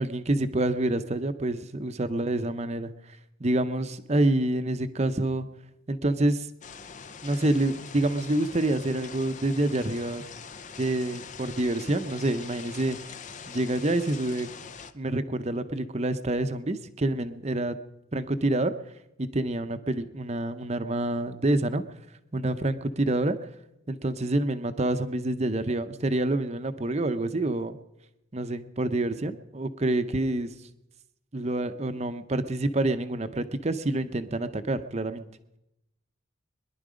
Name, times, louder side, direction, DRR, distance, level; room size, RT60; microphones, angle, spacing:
voice 1, 0.0-2.9 3.4-5.5 5.9-6.5 7.2-10.2 10.8-13.0 13.5-14.5 14.9-17.8 18.1-18.7 19.2-21.8 22.3-23.4 23.9-27.8 28.3-30.5 31.3-35.2, right 1 dB, 35° right, 10 dB, 0.7 m, -27 dB
sound 1, 6.6-14.9, left 6 dB, 35° left, 0.6 m, -43 dB
22.5 x 11.0 x 5.1 m, 0.90 s
head